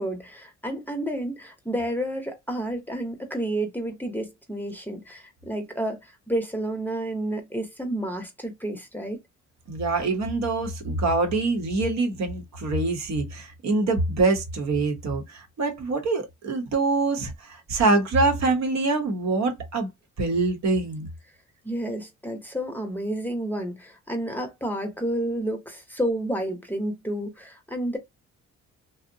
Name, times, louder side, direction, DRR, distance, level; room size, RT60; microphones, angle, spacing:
voice 1, 0.0-9.2 21.6-28.0, right 1 dB, 5° left, 0.7 m, -30 dB
voice 2, 9.7-19.9 20.2-21.1, right 3 dB, 65° right, 0.9 m, -25 dB
2.7 x 2.0 x 2.6 m
cardioid pair, 90°, 30 cm